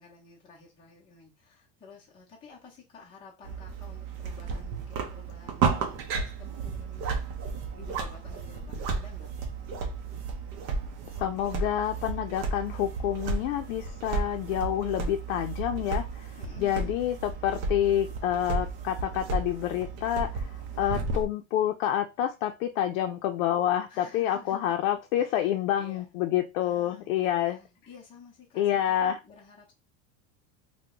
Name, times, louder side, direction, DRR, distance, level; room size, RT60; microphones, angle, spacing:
voice 1, 0.0-7.3 7.7-9.3 16.4-17.0 20.7-21.1 23.9-24.7 25.2-25.5 25.8-26.1 26.6-29.7, left 5 dB, 15° left, 0.7 m, -52 dB
sound 1, 3.4-21.3, right 4 dB, 45° right, 0.6 m, -33 dB
voice 2, 11.2-27.6 28.6-29.2, left 11 dB, 80° left, 0.5 m, -28 dB
2.8 x 2.2 x 3.6 m
supercardioid pair, 170°, 39 cm